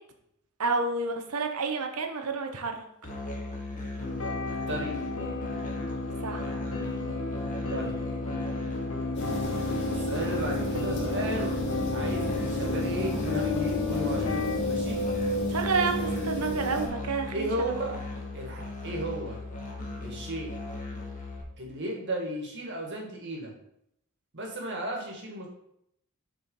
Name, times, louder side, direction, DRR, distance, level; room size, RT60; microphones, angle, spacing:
voice 1, 0.6-2.8 6.2-6.5 15.5-17.8, right 4 dB, 80° right, 5 dB, 1.0 m, -30 dB
Musical instrument, 3.0-21.4, left 2 dB, 35° left, 1.5 m, -38 dB
sound 1, 4.0-14.6, left 3 dB, 70° left, 1.1 m, -33 dB
voice 2, 4.7-5.0 7.7-8.0 9.9-11.6 11.9-14.4 14.6-15.0 17.3-18.0 18.3-19.4 20.0-20.5 21.6-23.5 24.3-25.5, right 1 dB, 55° right, 0 dB, 1.8 m, -34 dB
sound 2, 9.1-16.9, equal, 50° left, 2.1 m, -31 dB
6.6 x 4.4 x 5.4 m, 0.76 s
head